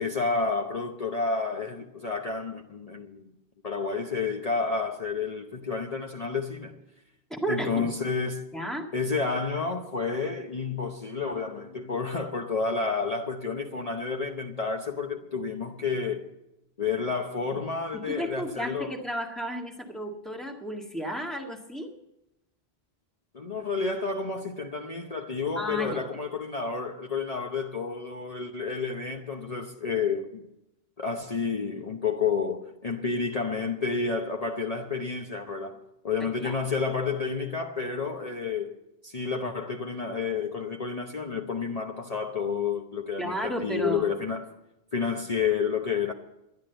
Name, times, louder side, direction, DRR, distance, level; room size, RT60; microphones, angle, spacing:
voice 1, 0.0-3.3 3.6-6.8 7.5-8.5 8.9-16.3 16.8-18.9 23.3-30.4 31.0-35.8 36.0-38.7 39.0-44.5 44.9-46.1, left 5 dB, 40° left, 1.0 m, -30 dB
voice 2, 7.3-7.9 8.5-8.9 17.5-17.6 17.9-21.9 25.5-26.1 36.4-36.6 43.2-44.1, equal, ahead, 1.7 m, -33 dB
12.0 x 10.5 x 7.8 m
omnidirectional pair, 1.1 m